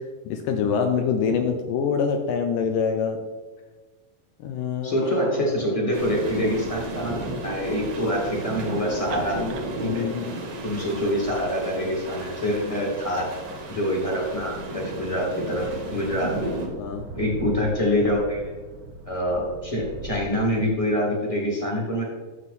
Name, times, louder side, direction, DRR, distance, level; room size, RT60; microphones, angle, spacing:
voice 1, 0.3-3.2 4.4-5.2 9.3-9.6 9.8-10.3 11.8-11.9 12.6-12.7 16.8-17.1, left 6 dB, 75° left, 5 dB, 2.0 m, -25 dB
voice 2, 4.8-7.1 7.4-9.4 9.9-10.0 10.6-13.2 13.7-16.6 17.1-18.5 19.0-22.0, equal, 15° left, -3 dB, 1.3 m, -25 dB
sound 1, 5.0-9.7, left 1 dB, 40° left, 1.9 m, -45 dB
sound 2, 5.9-16.7, right 2 dB, 55° right, 1.8 m, -35 dB
sound 3, 5.9-20.8, right 3 dB, 85° right, 3.0 m, -41 dB
11.0 x 7.5 x 4.2 m, 1.3 s
omnidirectional pair, 4.5 m